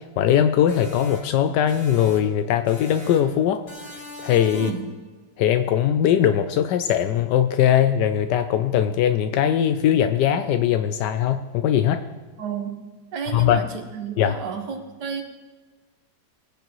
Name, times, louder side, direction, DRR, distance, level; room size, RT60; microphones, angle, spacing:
voice 1, 0.0-3.6 4.2-4.7 5.4-12.0 13.3-13.7 14.2-14.4, left 10 dB, 90° left, 8 dB, 1.2 m, -20 dB
sound 1, 0.7-2.4 2.7-3.4 3.7-4.9, left 2 dB, 70° left, 3.7 m, -40 dB
voice 2, 4.5-4.9 12.4-12.8 13.1-15.2, right 6 dB, 85° right, 4 dB, 1.8 m, -31 dB
20.0 x 10.0 x 3.1 m, 1.3 s
omnidirectional pair, 1.8 m